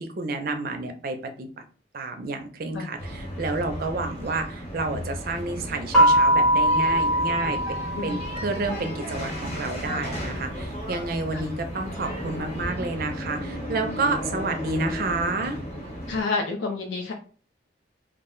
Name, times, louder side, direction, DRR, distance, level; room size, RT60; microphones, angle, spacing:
voice 1, 0.0-1.6 1.9-7.6 8.0-15.6, right 3 dB, 50° right, 6 dB, 0.4 m, -30 dB
sound 1, 3.0-16.2, equal, 35° left, 0.8 m, -34 dB
sound 2, 5.9-8.7, equal, 5° left, 0.6 m, -21 dB
voice 2, 16.1-17.1, left 3 dB, 75° left, 2 dB, 0.4 m, -29 dB
2.3 x 2.1 x 3.7 m, 0.41 s
head